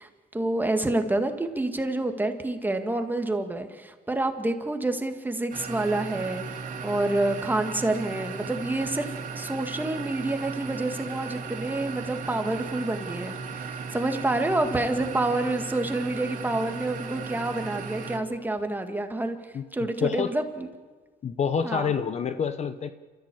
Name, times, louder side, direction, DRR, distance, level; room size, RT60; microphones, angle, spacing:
voice 1, 0.0-19.4 19.7-20.7 21.6-21.9, right 2 dB, 10° right, 5 dB, 2.0 m, -28 dB
sound 1, 5.5-18.2, right 5 dB, 50° right, 3.2 m, -36 dB
voice 2, 20.0-20.3 21.2-22.9, left 7 dB, 40° left, 11 dB, 1.0 m, -27 dB
28.0 x 14.0 x 8.6 m, 1.4 s
cardioid pair, 110°, 17 cm